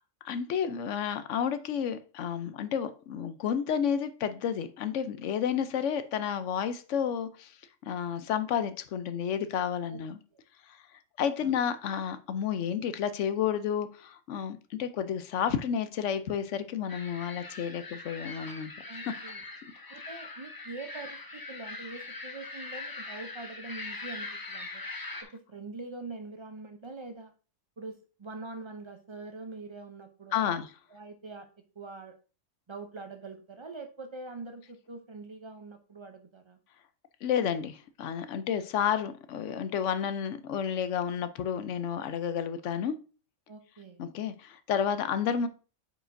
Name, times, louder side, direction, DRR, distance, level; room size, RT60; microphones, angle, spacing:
voice 1, 0.2-7.6 7.8-10.2 10.7-10.8 11.2-18.7 25.2-25.3 30.3-30.7 37.2-43.0 44.0-45.5, left 8 dB, 65° left, 0.9 m, -31 dB
sound 1, 16.9-25.2, left 3 dB, 35° left, 0.3 m, -42 dB
voice 2, 18.9-19.4 19.9-24.8 25.2-27.3 27.8-30.6 30.9-31.5 31.8-32.2 32.7-36.6 43.5-44.0, right 3 dB, 50° right, 0.3 m, -44 dB
8.8 x 4.9 x 2.6 m
omnidirectional pair, 1.4 m